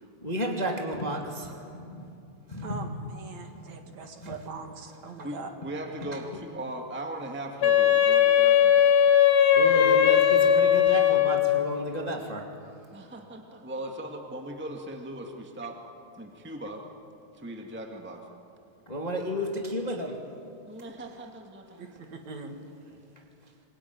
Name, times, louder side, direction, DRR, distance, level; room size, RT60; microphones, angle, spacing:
voice 1, 0.2-2.0 2.5-2.9 4.2-4.4 9.5-12.4 18.9-20.2, equal, 15° left, 1 dB, 1.6 m, -32 dB
voice 2, 2.6-5.5 21.8-22.6, right 4 dB, 55° right, 4 dB, 2.8 m, -42 dB
voice 3, 5.2-8.9 12.9-15.8 16.2-16.8 17.3-18.2 20.7-21.8, right 1 dB, 10° right, 2 dB, 0.6 m, -39 dB
Wind instrument woodwind instrument, 7.6-11.7, left 9 dB, 60° left, 1.8 m, -19 dB
27.0 x 22.0 x 9.5 m, 2.7 s
omnidirectional pair, 4.3 m